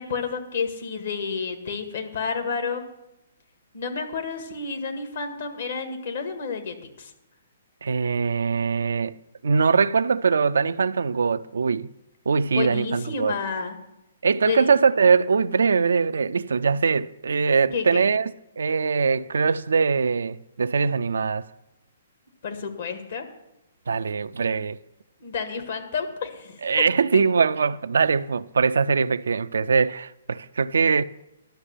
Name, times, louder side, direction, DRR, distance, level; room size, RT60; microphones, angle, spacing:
voice 1, 0.0-2.9 3.7-7.1 12.5-13.8 14.5-14.7 17.7-18.1 22.4-23.3 25.2-26.8 27.1-27.2, left 5 dB, 60° left, 1.7 m, -30 dB
voice 2, 7.8-9.1 9.4-11.9 12.3-13.3 14.2-21.5 23.9-24.8 26.6-31.0, right 5 dB, 70° right, 0.4 m, -22 dB
11.5 x 6.4 x 7.4 m
figure-of-eight pair, 125°, 0 cm